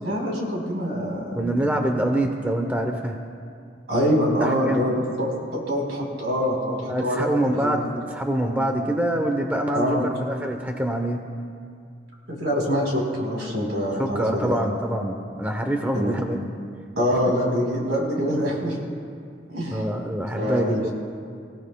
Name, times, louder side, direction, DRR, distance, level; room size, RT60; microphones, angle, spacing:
voice 1, 0.0-1.9 3.9-5.3 5.5-7.8 9.7-10.0 12.3-14.6 15.9-16.1 17.0-18.7 19.5-19.8 20.4-20.9, equal, 70° right, -1 dB, 4.2 m, -25 dB
voice 2, 1.3-3.2 4.4-5.0 6.8-11.2 14.0-16.4 19.7-20.9, right 1 dB, 10° right, 3 dB, 0.8 m, -25 dB
28.0 x 16.0 x 2.3 m, 2.3 s
head